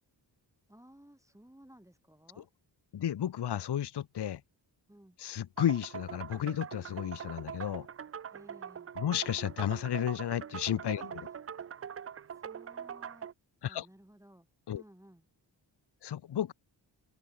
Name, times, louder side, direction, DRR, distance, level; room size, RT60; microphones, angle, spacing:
voice 1, 0.7-2.5 4.9-5.2 8.3-8.9 11.0-11.7 12.3-13.3 13.7-14.5 14.7-15.2, right 1 dB, 5° right, 3.2 m, -57 dB
voice 2, 2.9-4.4 5.2-7.9 9.0-11.0 13.6-13.9 14.7-14.8 16.0-16.5, left 10 dB, 60° left, 0.9 m, -32 dB
sound 1, 5.6-13.3, right 8 dB, 30° right, 0.5 m, -43 dB
open air
cardioid pair, 55°, 46 cm